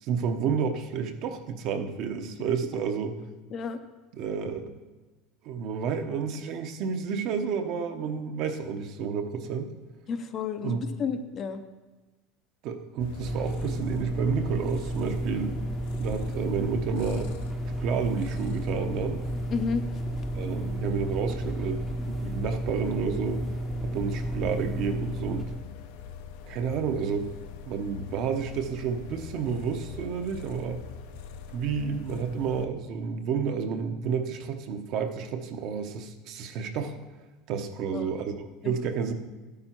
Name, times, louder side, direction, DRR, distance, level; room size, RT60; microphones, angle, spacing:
voice 1, 0.0-3.1 4.1-4.6 5.4-9.7 10.6-10.8 12.6-15.6 16.0-17.3 17.8-19.2 20.3-23.4 23.8-25.5 26.5-27.3 27.6-30.8 31.5-36.9 37.5-38.3 38.6-39.1, right 6 dB, 45° right, 6 dB, 0.9 m, -30 dB
voice 2, 3.5-3.8 10.1-11.6 19.5-20.0 37.9-38.1 38.6-38.8, left 5 dB, 30° left, 8 dB, 0.6 m, -31 dB
sound 1, 13.0-32.7, left 6 dB, 75° left, 0.8 m, -43 dB
sound 2, 13.2-25.6, right 1 dB, 5° right, 0.7 m, -32 dB
12.0 x 8.7 x 4.5 m, 1.2 s
cardioid pair, 165°, 0 cm